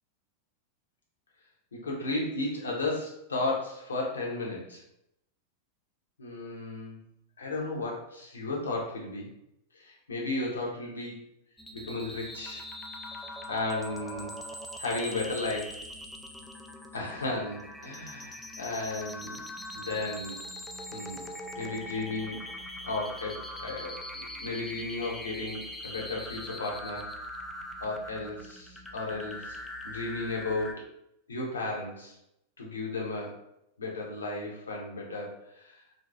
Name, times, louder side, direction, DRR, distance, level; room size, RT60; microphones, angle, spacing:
voice 1, 1.7-4.8 6.2-7.0 7.4-9.3 9.8-11.2 11.7-12.6 13.5-14.3 14.8-15.8 16.9-19.4 19.7-20.4 20.9-21.3 21.6-22.4 22.8-27.1 27.8-29.6 29.8-30.8 31.3-32.1 32.6-33.4 33.8-35.7, left 2 dB, 70° left, -2 dB, 0.7 m, -34 dB
sound 1, 11.6-30.7, left 1 dB, 5° left, 0.4 m, -42 dB
2.9 x 2.7 x 2.4 m, 0.79 s
figure-of-eight pair, 90°, 0 cm